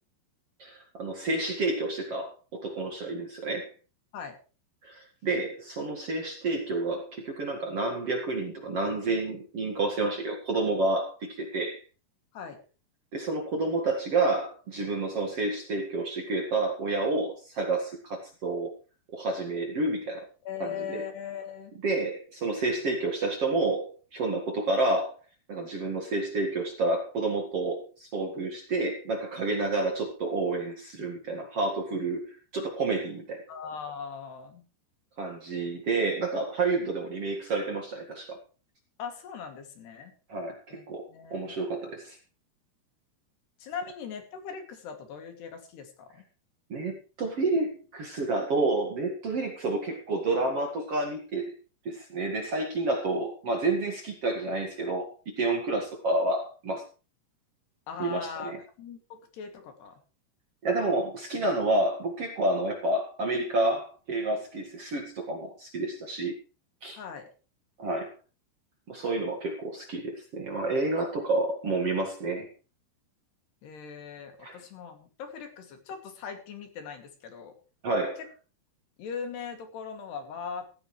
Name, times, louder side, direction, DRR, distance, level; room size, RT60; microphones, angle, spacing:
voice 1, 0.6-3.7 4.8-11.8 13.1-18.7 19.1-20.3 20.6-21.0 21.8-25.1 25.5-33.4 35.2-38.4 40.3-42.2 46.7-51.5 51.9-56.8 58.0-58.6 60.6-66.3 66.8-67.0 67.8-68.1 68.9-72.5 74.4-74.6 77.8-78.2, right 2 dB, 45° right, 3 dB, 2.3 m, -29 dB
voice 2, 20.5-21.7 33.5-34.6 39.0-40.1 40.7-40.8 41.1-41.5 43.6-46.2 57.9-60.0 66.9-67.3 73.6-77.5 79.0-80.7, left 6 dB, 75° left, 5 dB, 4.6 m, -40 dB
15.5 x 15.0 x 3.3 m, 0.35 s
omnidirectional pair, 4.9 m